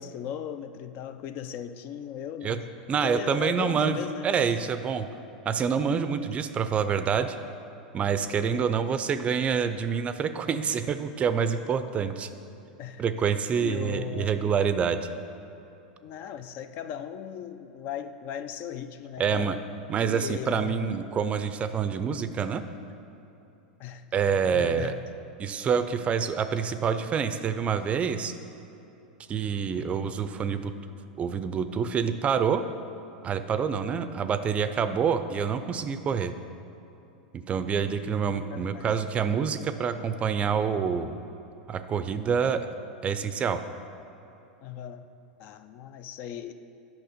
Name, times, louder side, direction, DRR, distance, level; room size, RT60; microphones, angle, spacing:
voice 1, 0.0-2.7 3.0-4.4 12.8-13.0 13.6-14.5 16.0-19.5 20.1-20.9 23.8-24.0 24.5-25.0 38.5-38.9 44.6-45.1 45.4-46.5, left 9 dB, 50° left, 10 dB, 0.5 m, -37 dB
voice 2, 2.9-5.1 5.5-7.4 7.9-12.3 13.0-15.0 19.2-19.6 19.9-22.6 24.1-24.9 25.4-28.3 29.3-30.7 31.2-32.6 33.2-36.3 37.3-41.2 41.7-42.7 43.0-43.6, right 6 dB, 25° right, 11 dB, 0.5 m, -27 dB
9.2 x 5.9 x 5.0 m, 2.9 s
hypercardioid pair, 100°, 5 cm